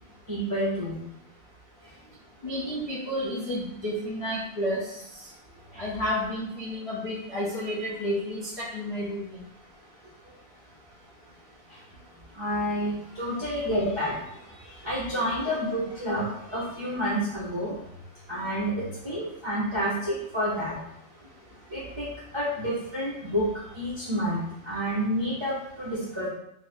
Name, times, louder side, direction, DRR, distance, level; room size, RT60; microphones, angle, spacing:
voice 1, 0.3-1.0 2.6-2.8 5.7-5.8 11.7-11.8 12.3-14.1 14.6-17.8 18.3-20.7 21.7-22.1 22.3-26.3, equal, 30° right, -8 dB, 0.6 m, -29 dB
voice 2, 2.4-4.8 5.8-9.4, equal, 40° left, -7 dB, 0.5 m, -31 dB
2.8 x 2.3 x 4.1 m, 0.81 s
omnidirectional pair, 1.4 m